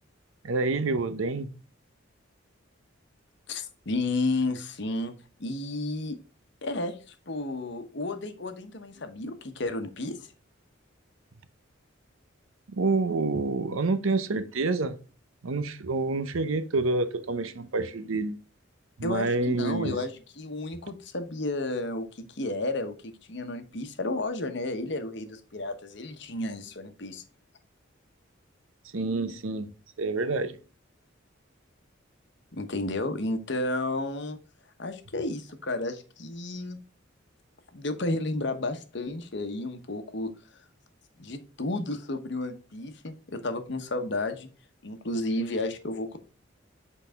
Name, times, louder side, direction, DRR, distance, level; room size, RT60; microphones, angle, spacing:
voice 1, 0.4-1.5 12.8-15.0 15.4-18.4 19.0-20.0 28.9-29.7 30.0-30.6, right 3 dB, 80° right, 0.7 m, -28 dB
voice 2, 3.5-5.1 5.4-6.2 6.6-10.3 19.0-27.2 32.5-34.4 34.8-36.8 37.7-40.3 41.2-44.5 44.8-46.2, left 2 dB, 55° left, 1.0 m, -32 dB
7.9 x 4.0 x 3.5 m
head